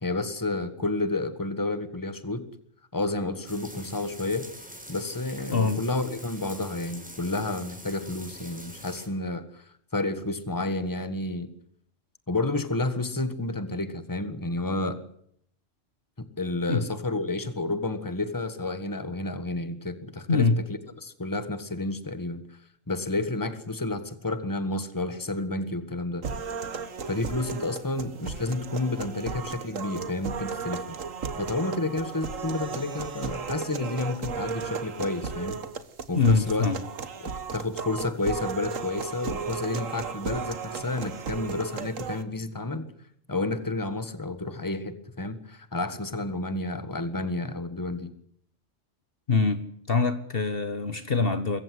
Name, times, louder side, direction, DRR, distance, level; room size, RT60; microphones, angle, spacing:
voice 1, 0.0-2.5 2.9-4.5 4.9-11.5 12.3-15.0 16.2-20.5 21.0-22.6 22.9-26.3 27.1-31.0 31.4-35.6 36.1-36.7 37.2-42.9 43.3-48.1, left 2 dB, 15° left, 1.7 m, -30 dB
sound 1, 3.5-9.1, equal, 5° right, 4.1 m, -44 dB
voice 2, 5.5-5.8 16.7-16.9 20.3-20.6 36.2-36.8 49.3-51.6, left 4 dB, 50° left, 1.5 m, -24 dB
sound 2, 26.2-42.2, right 5 dB, 85° right, 1.8 m, -35 dB
24.0 x 15.0 x 9.5 m
omnidirectional pair, 1.3 m